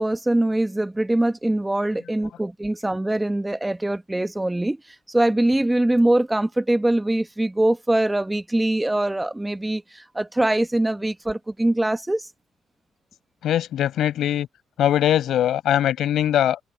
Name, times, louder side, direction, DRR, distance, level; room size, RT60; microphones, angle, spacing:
voice 1, 0.0-4.8 5.1-12.3, right 1 dB, 10° right, 1.0 m, -23 dB
voice 2, 13.4-14.5 14.8-16.6, left 11 dB, 65° left, 5.7 m, -21 dB
cardioid pair, 105°, 0 cm